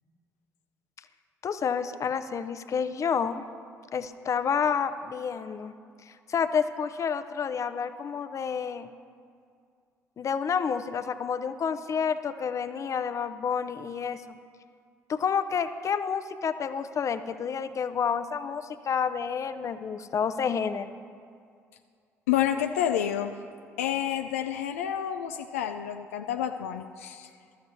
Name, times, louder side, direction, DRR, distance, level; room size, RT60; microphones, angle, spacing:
voice 1, 1.4-3.4 3.9-5.7 6.1-8.9 10.2-14.4 15.1-20.9, left 6 dB, 45° left, 11 dB, 0.7 m, -29 dB
voice 2, 22.3-23.3 23.8-27.3, left 10 dB, 80° left, 6 dB, 0.4 m, -29 dB
20.5 x 13.5 x 2.7 m, 2.3 s
figure-of-eight pair, 50°, 8 cm